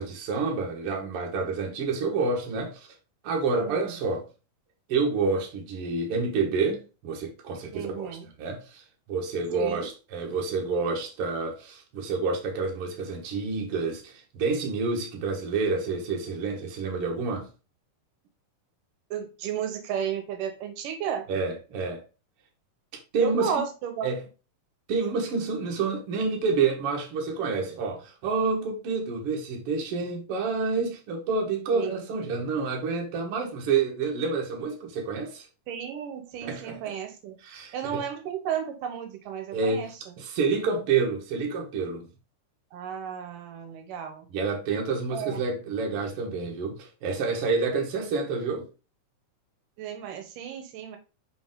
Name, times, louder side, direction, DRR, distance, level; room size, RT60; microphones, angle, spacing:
voice 1, 0.0-2.9 3.2-4.3 4.9-8.8 9.1-17.5 21.3-22.0 23.1-23.5 24.0-24.2 24.9-35.5 36.4-37.0 37.4-38.0 39.5-42.1 44.3-48.7, right 4 dB, 55° right, 2.1 m, -28 dB
voice 2, 7.7-8.3 9.5-9.9 19.1-21.2 23.2-24.1 31.7-32.0 35.7-37.4 37.7-39.9 42.7-44.3 45.1-45.4 49.8-51.0, right 8 dB, 90° right, 2.6 m, -33 dB
6.0 x 5.2 x 3.8 m
omnidirectional pair, 3.7 m